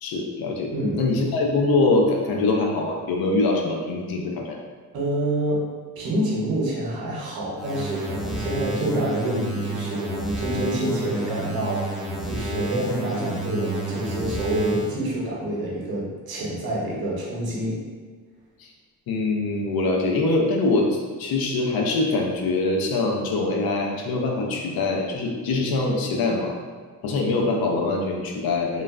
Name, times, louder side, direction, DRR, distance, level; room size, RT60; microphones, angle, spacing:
voice 1, 0.0-4.6 18.6-18.7 19.1-26.6 27.0-28.8, left 2 dB, 85° left, 1 dB, 0.6 m, -23 dB
voice 2, 4.9-5.6 6.0-17.8, right 1 dB, 90° right, -4 dB, 0.8 m, -27 dB
sound 1, 7.6-15.0, right 1 dB, ahead, 0.3 m, -30 dB
3.1 x 2.3 x 2.4 m, 1.5 s
cardioid pair, 120°, 35 cm